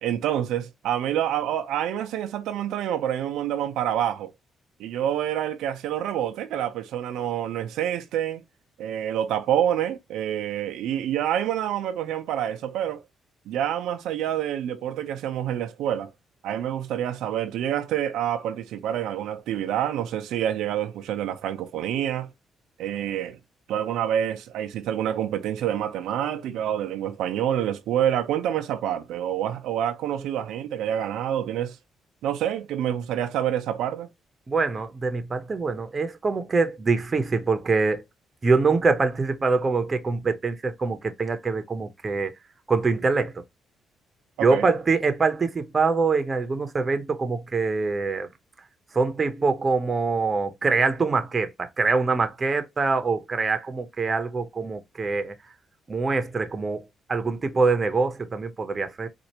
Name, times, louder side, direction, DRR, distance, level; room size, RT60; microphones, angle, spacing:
voice 1, 0.0-4.3 4.8-8.4 8.8-13.0 13.5-16.1 16.4-22.3 22.8-23.4 23.7-31.8 32.2-34.1 44.4-44.7, right 10 dB, 85° right, 0.5 m, -27 dB
voice 2, 34.5-38.0 38.4-42.3 42.7-43.3 44.4-48.3 48.9-55.3 55.9-56.8 57.1-59.1, right 4 dB, 30° right, 0.8 m, -24 dB
4.3 x 2.5 x 2.9 m
cardioid pair, 90°, 0 cm